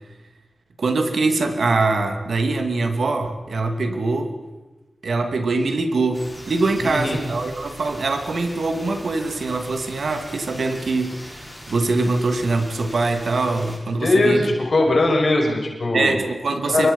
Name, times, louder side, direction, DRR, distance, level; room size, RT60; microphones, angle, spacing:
voice 1, 0.8-4.3 5.0-14.5 14.8-14.9 15.9-16.9, right 3 dB, 85° right, 5 dB, 2.6 m, -23 dB
sound 1, 6.1-13.8, equal, 5° left, 7.2 m, -40 dB
voice 2, 6.8-7.2 14.0-16.2 16.6-16.9, left 2 dB, 65° left, 1 dB, 5.9 m, -20 dB
28.0 x 23.5 x 5.6 m, 1.1 s
wide cardioid pair, 95°, 0 cm